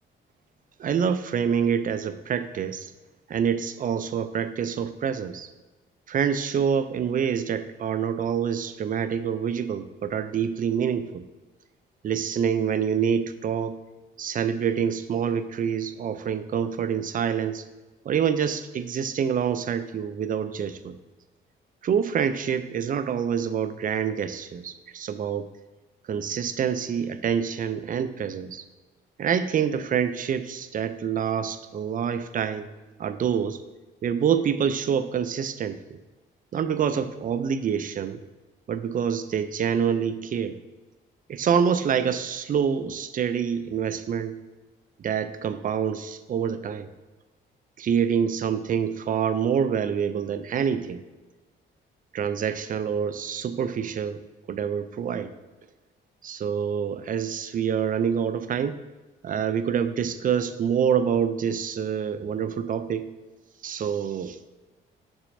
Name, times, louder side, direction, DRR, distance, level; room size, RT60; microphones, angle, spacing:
voice 1, 0.8-2.9 3.3-5.5 6.1-11.2 12.0-13.8 14.2-17.6 18.0-21.0 21.8-25.5 26.1-28.6 29.2-32.7 33.0-33.6 34.0-36.0 36.5-38.2 38.7-40.6 41.3-44.4 45.0-46.9 47.8-51.0 52.1-54.2 54.5-55.3 56.2-58.8 59.2-63.0 63.6-64.4, right 7 dB, 45° right, 11 dB, 0.5 m, -26 dB
6.5 x 6.1 x 2.7 m, 1.2 s
cardioid pair, 90°, 20 cm